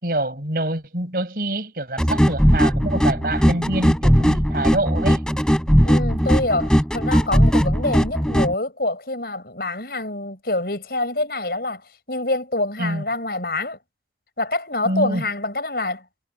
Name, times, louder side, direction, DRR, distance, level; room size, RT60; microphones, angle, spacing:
voice 1, 0.0-5.2 12.8-13.0 14.9-15.2, right 1 dB, 55° right, 6.9 m, -25 dB
sound 1, 2.0-8.5, equal, 5° left, 5.1 m, -18 dB
voice 2, 5.8-13.8 14.4-16.0, left 2 dB, 60° left, 6.4 m, -26 dB
head